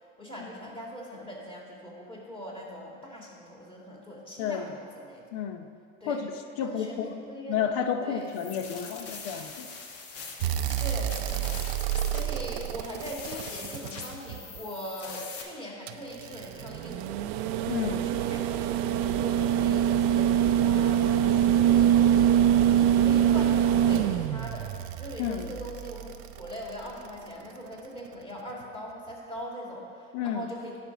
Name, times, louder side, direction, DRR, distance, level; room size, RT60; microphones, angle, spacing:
voice 1, 0.2-5.3 6.0-6.2 6.6-7.6 8.0-8.3 8.7-8.8 9.2-9.3 10.8-11.6 12.1-17.2 17.8-30.8, equal, 15° left, -3 dB, 2.0 m, -41 dB
voice 2, 5.3-5.7 6.0-6.2 6.6-7.1 7.5-9.7 17.7-18.0 25.2-25.5 30.1-30.5, left 8 dB, 80° left, 7 dB, 0.8 m, -31 dB
sound 1, 8.3-15.4, left 4 dB, 50° left, 1.2 m, -42 dB
sound 2, 10.4-14.6 15.9-27.1 28.6-28.7, right 10 dB, 90° right, 0.5 m, -25 dB
10.5 x 4.3 x 6.0 m, 2.3 s
supercardioid pair, 115°, 31 cm